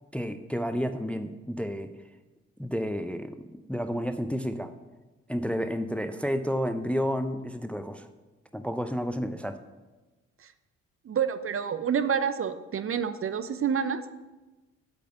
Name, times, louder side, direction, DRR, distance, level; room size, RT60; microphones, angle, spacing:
voice 1, 0.1-1.9 2.6-4.7 5.3-8.1 8.5-9.6, equal, 5° left, 10 dB, 0.6 m, -31 dB
voice 2, 11.1-14.0, right 7 dB, 35° right, 12 dB, 0.7 m, -28 dB
8.4 x 5.9 x 8.0 m, 1.2 s
figure-of-eight pair, 45°, 38 cm